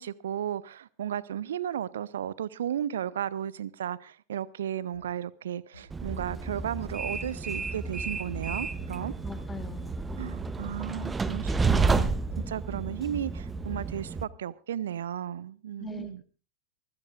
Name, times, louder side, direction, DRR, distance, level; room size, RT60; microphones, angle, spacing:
voice 1, 0.0-9.1 10.2-12.1 12.5-16.2, right 10 dB, 60° right, 0.6 m, -34 dB
sound 1, 4.9-5.1 5.7-5.9 6.5-6.7 7.1-7.2 7.9-8.1 8.7-8.9 9.3-9.4 10.1-10.2 10.9-11.1 11.5-11.6 12.3-12.4 13.1-13.2, left 2 dB, 80° left, 6.4 m, -51 dB
Train, 5.9-14.2, right 4 dB, 15° right, 0.8 m, -31 dB
voice 2, 9.2-10.0 15.8-16.2, left 4 dB, 15° left, 1.6 m, -41 dB
24.0 x 16.0 x 2.5 m
figure-of-eight pair, 90°, 0 cm